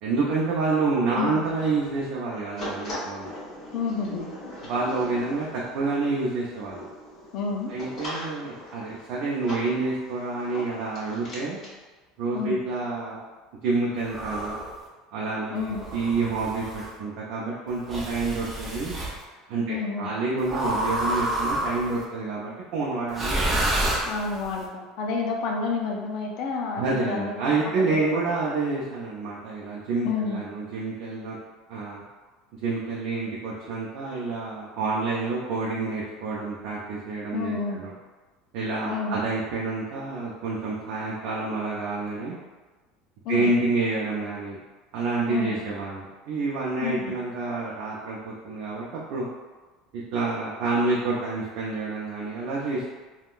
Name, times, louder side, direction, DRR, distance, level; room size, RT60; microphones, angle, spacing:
voice 1, 0.0-3.3 4.1-4.2 4.6-6.9 7.7-11.6 12.2-13.2 13.6-14.5 15.1-19.0 19.5-23.6 26.8-31.4 31.7-32.0 32.5-37.9 38.5-42.4 43.3-44.6 44.9-49.3 49.9-52.9, right 3 dB, 65° right, -5 dB, 0.5 m, -28 dB
voice 2, 1.1-1.5 3.7-4.3 7.3-7.7 12.3-12.6 15.5-15.8 19.7-20.1 24.1-27.6 27.9-28.0 30.0-30.4 37.3-37.8 38.9-39.2 43.2-43.5 45.3-45.6 46.8-47.0, left 4 dB, 60° left, 1 dB, 0.4 m, -29 dB
sound 1, 2.6-11.7, left 1 dB, 35° left, 1.2 m, -40 dB
sound 2, 14.1-14.7 15.7-16.9 17.9-19.2 20.5-22.0 23.1-24.5, right 1 dB, 20° right, 0.5 m, -28 dB
3.6 x 2.2 x 2.5 m, 1.3 s
supercardioid pair, 130°, 0 cm